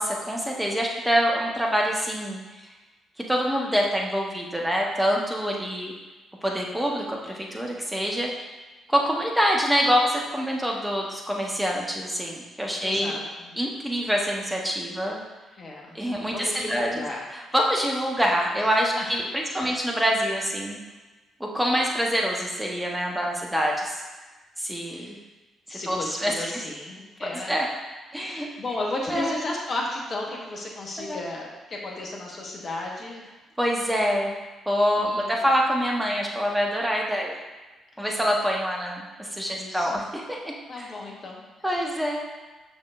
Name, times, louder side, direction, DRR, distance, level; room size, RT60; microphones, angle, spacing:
voice 1, 0.0-2.7 3.2-5.9 6.4-8.3 8.9-13.2 13.6-15.2 15.9-17.1 17.3-20.8 21.4-24.0 24.6-25.2 25.7-26.5 27.2-27.7 28.1-28.5 29.1-29.4 31.0-31.2 33.6-34.3 34.7-37.4 38.0-40.9 41.6-42.3, equal, 5° right, -1 dB, 1.2 m, -26 dB
voice 2, 12.8-13.6 15.6-17.2 19.0-19.1 19.5-19.9 24.9-25.1 25.7-27.5 28.1-33.3 35.0-35.3 38.0-38.1 39.5-40.1 40.7-41.4 41.7-41.9, left 2 dB, 45° left, -2 dB, 1.3 m, -34 dB
6.4 x 5.7 x 2.5 m, 1.2 s
figure-of-eight pair, 40°, 0 cm